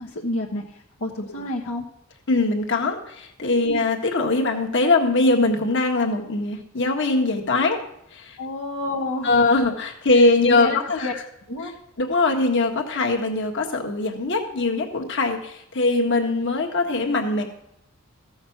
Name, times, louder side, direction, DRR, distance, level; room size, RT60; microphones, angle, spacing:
voice 1, 0.0-1.8 3.6-3.8 8.4-9.4 10.1-11.1 11.5-11.8, left 1 dB, 80° left, -2 dB, 1.3 m, -30 dB
voice 2, 2.3-7.8 8.1-8.4 9.2-11.1 12.0-17.4, left 3 dB, 60° left, 2 dB, 1.6 m, -21 dB
14.5 x 6.4 x 5.9 m, 0.78 s
head